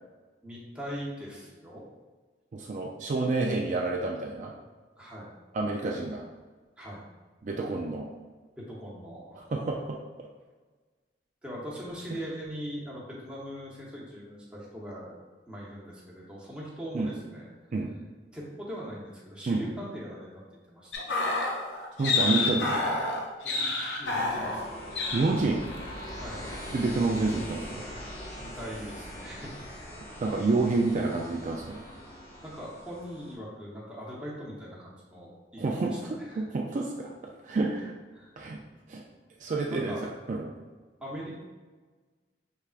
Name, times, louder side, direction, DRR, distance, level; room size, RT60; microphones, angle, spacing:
voice 1, 0.4-1.8 5.0-5.3 6.8-7.0 8.6-9.4 11.4-15.2 15.5-17.5 18.3-20.4 20.7-21.4 23.4-23.7 24.0-24.9 26.2-26.5 28.4-30.0 32.4-36.4 38.1-38.3 39.6-40.0 41.0-41.4, equal, 5° right, -6 dB, 0.9 m, -41 dB
voice 2, 2.5-4.5 5.5-6.3 7.4-8.1 9.4-10.3 12.1-12.2 16.9-17.1 17.7-17.9 19.5-19.6 22.0-23.0 25.1-25.6 26.7-27.8 30.2-31.8 35.6-37.1 37.4-38.0 38.4-38.6 38.9-39.0 39.4-40.5, right 3 dB, 45° right, 0 dB, 0.3 m, -29 dB
sound 1, 20.9-24.7 24.9-25.3 25.6-25.9, left 3 dB, 80° left, 0.7 m, -29 dB
sound 2, 24.0-33.3, equal, 40° left, 1.2 m, -42 dB
5.6 x 3.4 x 2.4 m, 1.4 s
head